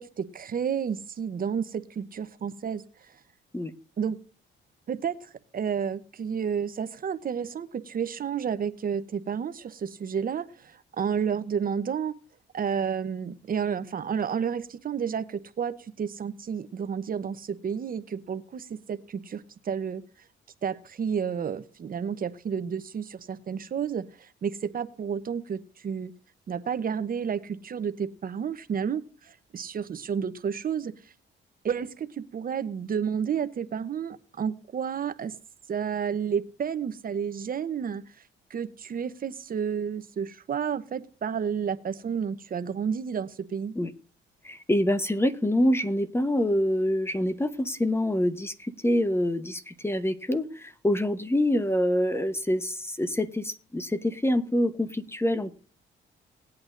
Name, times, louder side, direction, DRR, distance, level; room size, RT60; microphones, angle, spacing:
voice 1, 0.0-3.2 4.0-4.2 4.9-12.2 12.5-20.0 20.6-26.1 26.5-31.1 31.6-35.3 35.7-38.0 38.5-43.8, right 7 dB, 45° right, 12 dB, 0.9 m, -31 dB
voice 2, 44.4-55.5, left 1 dB, 10° left, 11 dB, 1.1 m, -26 dB
19.5 x 8.7 x 2.6 m, 0.38 s
cardioid pair, 90°, 20 cm